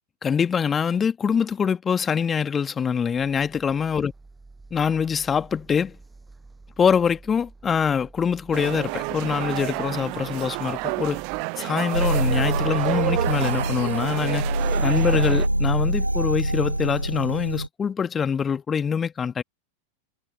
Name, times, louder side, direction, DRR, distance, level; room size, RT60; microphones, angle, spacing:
voice 1, 0.2-4.1 4.7-6.0 6.8-11.2 11.6-14.5 14.8-19.4, left 7 dB, 20° left, 1.9 m, -24 dB
sound 1, 3.1-11.4, right 3 dB, 10° right, 7.8 m, -49 dB
sound 2, 8.5-15.5, right 39 dB, 45° right, 0.6 m, -29 dB
sound 3, 11.9-17.7, right 1 dB, 85° right, 0.9 m, -24 dB
figure-of-eight pair, 90°, 0 cm